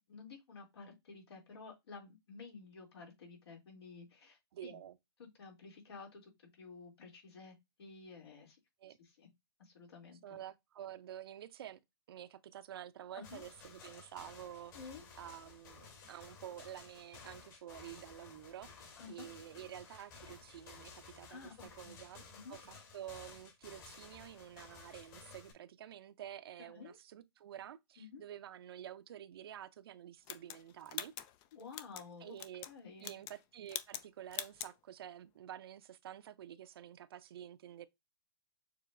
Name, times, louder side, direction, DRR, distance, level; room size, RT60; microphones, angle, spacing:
voice 1, 0.1-4.8 5.2-8.6 9.0-9.3 9.6-10.2 13.1-13.4 14.7-15.0 19.0-19.3 21.3-22.0 22.3-22.6 26.6-27.0 28.0-28.2 31.5-32.4 32.6-33.2, left 4 dB, 75° left, 2.5 m, -52 dB
voice 2, 4.5-5.0 8.8-9.0 10.2-11.8 12.1-14.7 15.2-22.2 22.5-22.7 22.9-31.1 32.2-32.6 33.0-37.9, right 11 dB, 65° right, 0.6 m, -49 dB
sound 1, 13.2-25.5, left 5 dB, 50° left, 2.9 m, -55 dB
sound 2, 30.3-32.1 32.4-32.7 33.0-33.4 33.7-34.1 34.3-34.7, left 11 dB, 25° left, 0.4 m, -43 dB
6.7 x 3.1 x 2.5 m
hypercardioid pair, 145°, 14 cm